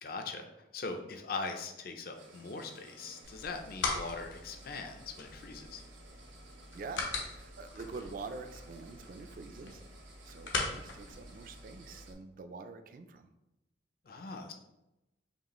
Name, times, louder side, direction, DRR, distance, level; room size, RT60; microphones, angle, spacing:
voice 1, 0.0-5.8 14.0-14.5, left 4 dB, 50° left, 5 dB, 0.4 m, -41 dB
sound 1, 2.1-12.1, right 2 dB, 80° right, 0.9 m, -57 dB
sound 2, 3.2-12.1, left 3 dB, 80° left, 0.7 m, -41 dB
voice 2, 6.7-9.8 10.2-13.3, right 4 dB, 45° right, 8 dB, 0.3 m, -46 dB
5.2 x 2.4 x 3.0 m, 0.92 s
head